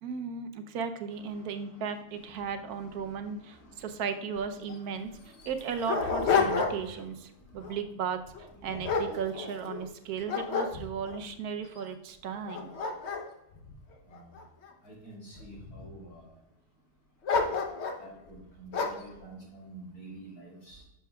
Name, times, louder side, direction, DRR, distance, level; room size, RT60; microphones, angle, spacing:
voice 1, 0.0-5.1 5.4-7.1 7.5-8.2 8.6-12.7, right 6 dB, 80° right, 8 dB, 1.2 m, -35 dB
voice 2, 1.3-1.8 2.4-3.2 3.5-4.0 5.1-5.4 14.1-14.2 14.8-16.3 17.4-20.8, right 1 dB, 85° left, -3 dB, 3.4 m, -49 dB
Dog, 4.4-4.5 4.7-4.8 5.4-7.0 7.4-7.8 8.3-9.8 10.3-11.2 11.8-11.9 12.3-14.7 15.3-16.0 17.2-18.1 18.7-19.1, left 5 dB, 50° left, 1.0 m, -30 dB
11.0 x 6.7 x 2.3 m, 0.89 s
omnidirectional pair, 1.6 m